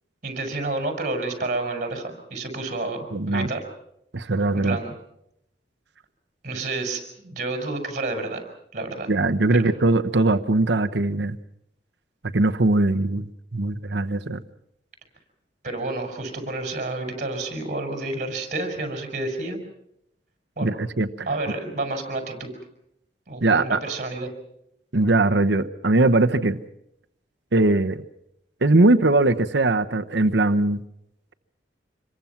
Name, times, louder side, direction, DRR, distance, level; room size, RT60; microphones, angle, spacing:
voice 1, 0.2-3.6 4.5-4.9 6.4-8.4 8.7-9.1 9.5-9.7 15.6-19.6 20.6-20.7 21.2-22.5 23.3-24.3, right 2 dB, 40° right, 4 dB, 6.0 m, -30 dB
voice 2, 3.1-3.5 4.1-4.8 9.1-11.4 12.3-14.4 20.6-21.1 23.4-23.8 24.9-26.6 27.5-28.0 28.6-30.8, right 2 dB, 70° right, 7 dB, 1.0 m, -20 dB
27.0 x 22.5 x 5.9 m, 0.76 s
head